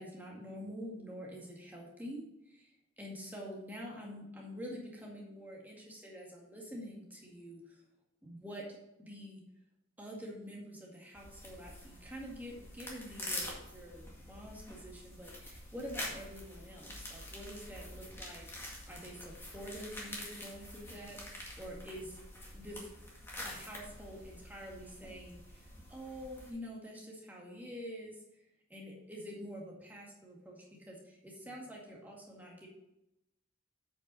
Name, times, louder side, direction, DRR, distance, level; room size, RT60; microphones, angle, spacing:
voice 1, 0.0-7.6 8.2-8.7 9.0-9.4 10.0-18.5 18.9-21.2 21.6-22.2 22.5-22.9 23.4-28.2 28.7-32.7, equal, 10° right, -2 dB, 2.0 m, -47 dB
sound 1, 11.1-26.5, left 1 dB, 10° left, 2.0 m, -46 dB
8.2 x 5.7 x 5.6 m, 0.88 s
head